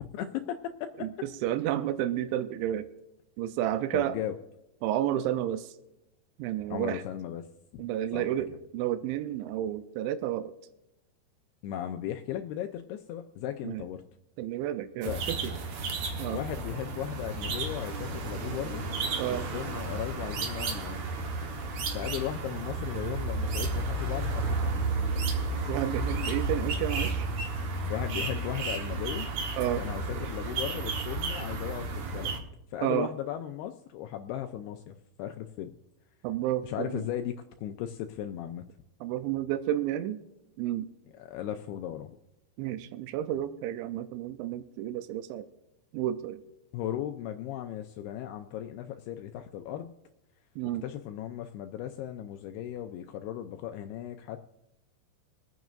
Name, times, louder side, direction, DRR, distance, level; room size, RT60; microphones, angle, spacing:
voice 1, 0.1-1.1 3.9-4.4 6.7-7.4 7.7-7.8 8.1-8.3 11.6-14.0 15.0-15.2 16.3-18.9 19.2-21.1 21.9-24.8 27.9-29.3 29.8-32.3 32.7-35.7 36.6-38.7 41.1-42.1 46.7-49.9 50.8-54.4, left 11 dB, 90° left, 6 dB, 2.3 m, -36 dB
voice 2, 1.4-2.8 3.4-4.2 4.8-5.7 6.4-7.0 7.8-10.5 13.6-13.8 14.4-15.5 16.2-16.4 19.2-19.5 25.7-27.3 29.6-29.8 32.8-33.1 36.2-37.0 39.0-40.2 40.6-40.9 42.6-45.5 45.9-46.4 50.6-50.8, right 12 dB, 90° right, 11 dB, 3.0 m, -31 dB
sound 1, 15.0-32.4, right 3 dB, 70° right, 1.7 m, -32 dB
25.5 x 9.2 x 2.6 m, 0.91 s
omnidirectional pair, 5.2 m